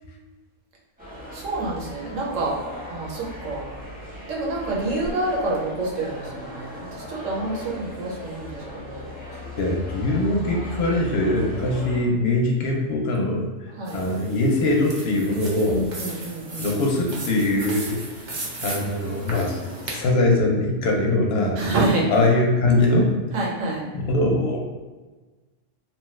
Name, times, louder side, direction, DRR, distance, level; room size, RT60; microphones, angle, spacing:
sound 1, 1.0-12.0, left 1 dB, 5° right, 0.9 m, -37 dB
voice 1, 1.3-2.5 2.9-3.7 4.3-9.1 13.7-14.0 15.7-16.7 21.5-22.1 23.3-23.9, right 2 dB, 75° right, -3 dB, 1.1 m, -27 dB
voice 2, 9.6-13.5 13.9-15.8 16.6-18.0 18.6-21.6 22.1-23.1 23.9-24.6, left 2 dB, 60° left, 0 dB, 0.8 m, -22 dB
sound 2, 13.9-20.0, right 2 dB, 55° right, 0.5 m, -36 dB
2.9 x 2.3 x 3.0 m, 1.3 s
omnidirectional pair, 1.3 m